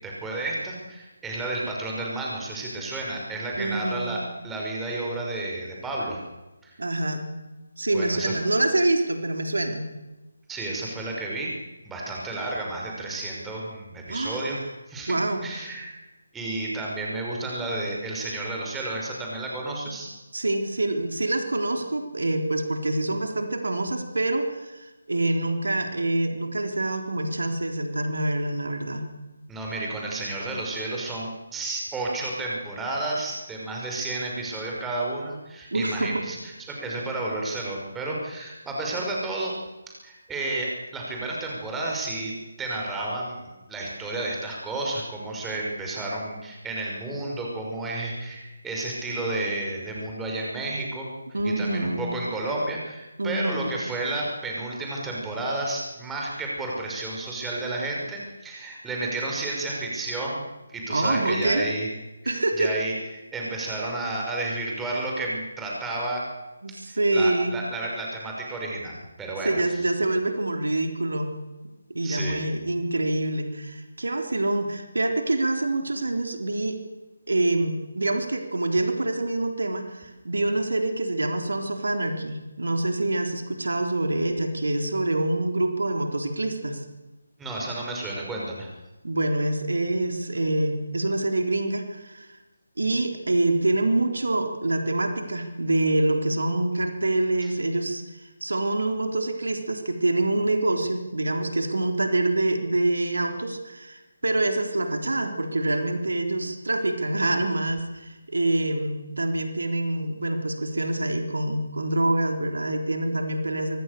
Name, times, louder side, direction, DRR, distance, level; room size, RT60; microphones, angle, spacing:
voice 1, 0.0-6.2 6.6-6.7 7.9-8.4 10.5-11.5 11.8-14.6 14.9-15.1 15.4-15.9 16.3-20.1 29.5-39.5 40.0-42.3 42.6-51.1 51.4-61.9 62.2-62.9 63.3-66.2 66.9-69.5 72.0-72.5 87.4-88.7 97.4-97.5, right 2 dB, 5° right, -2 dB, 5.8 m, -31 dB
voice 2, 3.6-4.2 6.8-7.2 7.8-9.9 14.1-14.7 15.1-15.5 19.9-20.0 20.3-29.1 35.7-36.2 51.3-52.1 53.2-53.7 60.9-61.7 62.3-62.7 66.6-67.6 69.4-71.3 71.9-76.8 77.3-86.8 89.0-92.4 92.8-98.0 98.4-113.8, right 2 dB, 70° right, 5 dB, 3.9 m, -26 dB
25.0 x 23.5 x 6.9 m, 1.1 s
figure-of-eight pair, 150°, 0 cm